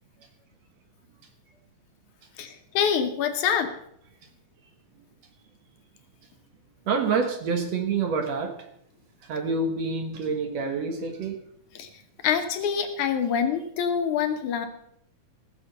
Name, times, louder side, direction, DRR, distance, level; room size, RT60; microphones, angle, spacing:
voice 1, 2.4-3.7 11.8-11.9 12.2-14.7, left 7 dB, 70° left, 6 dB, 2.4 m, -25 dB
voice 2, 6.9-8.6 9.3-11.4, right 4 dB, 60° right, 5 dB, 2.2 m, -27 dB
18.0 x 6.9 x 6.6 m, 0.72 s
omnidirectional pair, 3.8 m